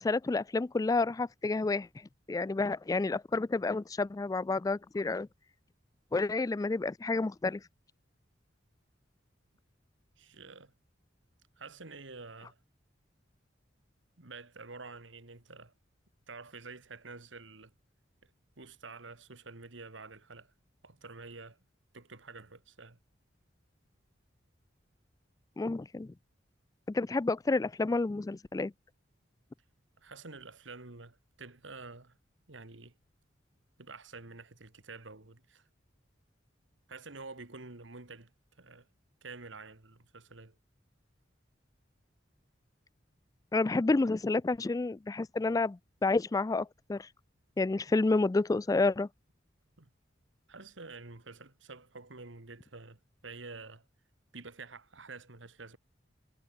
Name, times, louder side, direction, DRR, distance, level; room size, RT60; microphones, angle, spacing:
voice 1, 0.0-1.9 2.3-5.3 6.1-7.6 25.6-26.1 26.9-28.7 43.5-47.1 47.6-49.1, left 3 dB, 20° left, 0.3 m, -29 dB
voice 2, 10.2-10.7 11.6-12.6 14.2-15.7 16.3-17.7 18.2-18.3 18.6-20.5 20.8-21.6 21.9-23.0 30.0-32.1 32.5-32.9 33.8-35.7 36.9-38.3 38.6-38.9 39.2-40.6 49.8-49.9 50.5-53.9 54.3-55.8, right 3 dB, 80° right, 2.1 m, -48 dB
head